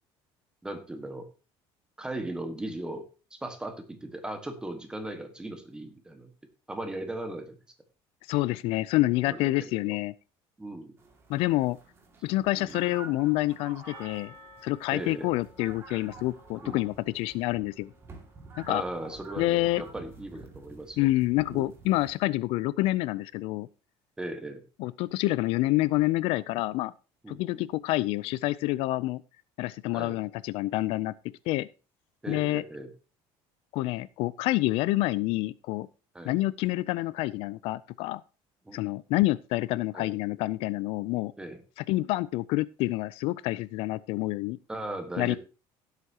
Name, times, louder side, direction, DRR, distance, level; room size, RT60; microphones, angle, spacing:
voice 1, 0.6-1.3 2.0-6.3 6.7-7.6 9.3-9.9 10.6-11.0 12.6-12.8 14.9-15.3 16.6-16.8 18.7-21.1 21.5-21.7 24.2-24.6 27.2-27.7 29.9-30.2 32.2-32.9 36.1-36.3 38.6-38.8 39.9-40.1 41.4-41.6 44.7-45.4, right 1 dB, 10° right, 1.6 m, -38 dB
voice 2, 8.3-10.1 11.3-11.8 12.2-14.3 14.6-17.9 18.6-18.8 19.4-19.8 21.0-23.7 24.8-26.9 27.3-29.2 29.6-31.1 31.5-31.7 32.3-32.6 33.7-35.9 36.2-38.2 38.7-41.3 41.9-44.6 45.2-45.4, left 18 dB, 70° left, 0.4 m, -27 dB
sound 1, 11.0-22.2, right 3 dB, 25° right, 2.2 m, -49 dB
Percussion, 13.8-18.1, left 1 dB, 20° left, 3.9 m, -54 dB
16.0 x 8.1 x 2.9 m
cardioid pair, 150°, 10 cm